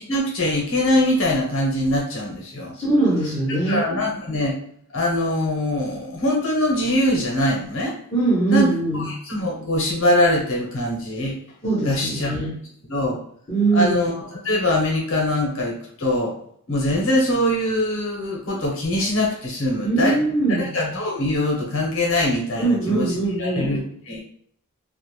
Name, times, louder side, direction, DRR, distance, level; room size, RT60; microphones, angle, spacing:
voice 1, 0.0-2.7 3.5-4.6 4.9-8.0 8.5-8.7 8.9-11.3 11.8-12.3 12.9-13.2 13.7-16.4 16.7-20.2 20.6-24.2, left 1 dB, 60° left, -2 dB, 0.8 m, -23 dB
voice 2, 2.7-3.9 8.1-9.0 11.6-12.5 13.5-14.1 19.8-20.7 22.6-23.7, right 3 dB, 25° left, -6 dB, 0.7 m, -21 dB
2.4 x 2.1 x 3.0 m, 0.64 s
head